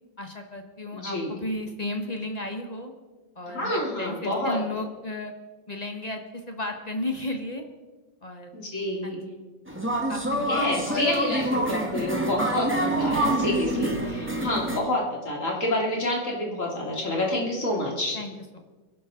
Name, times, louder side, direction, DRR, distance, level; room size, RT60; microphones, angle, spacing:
voice 1, 0.2-2.9 3.3-5.3 5.7-7.6 8.2-8.5 9.0-9.2 10.1-11.1 11.5-12.1 14.7-14.8 17.3-17.4 18.1-18.6, left 2 dB, 25° left, 4 dB, 1.3 m, -34 dB
voice 2, 0.9-1.3 3.5-4.6 8.5-9.3 10.4-18.2, left 1 dB, 45° left, -2 dB, 3.4 m, -28 dB
sound 1, 9.7-14.8, right 1 dB, 5° right, 1.5 m, -27 dB
23.5 x 11.5 x 3.9 m, 1.3 s
omnidirectional pair, 1.9 m